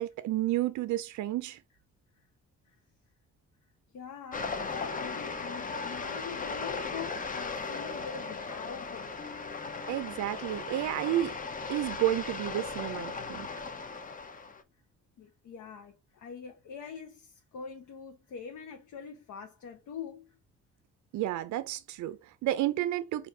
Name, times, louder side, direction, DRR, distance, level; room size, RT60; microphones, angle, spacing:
voice 1, 0.0-1.6 9.9-11.4 11.7-13.5 21.1-23.3, right 14 dB, 70° right, 0.4 m, -31 dB
voice 2, 3.9-9.1 15.2-20.4, left 7 dB, 75° left, 0.8 m, -44 dB
sound 1, 4.3-14.6, left 4 dB, 25° left, 0.7 m, -37 dB
Bass guitar, 9.2-12.2, left 5 dB, 40° left, 1.2 m, -55 dB
4.3 x 2.6 x 3.2 m
cardioid pair, 90°, 30 cm